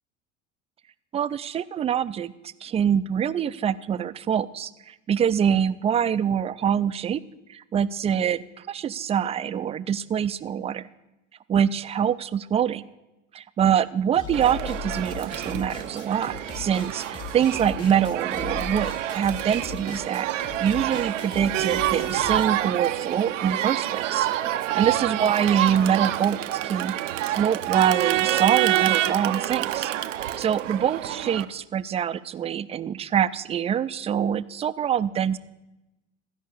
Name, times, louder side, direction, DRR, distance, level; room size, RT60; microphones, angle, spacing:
voice 1, 1.1-2.3 2.6-7.2 7.5-10.9 11.5-12.8 13.3-24.3 24.7-29.9 30.2-35.4, right 8 dB, 20° right, 15 dB, 0.3 m, -25 dB
sound 1, 14.1-22.5, left 7 dB, 40° left, 1.8 m, -38 dB
Crowd, 14.3-31.4, right 13 dB, 85° right, 0.6 m, -27 dB
13.5 x 5.4 x 8.4 m, 0.97 s
hypercardioid pair, 80°, 36 cm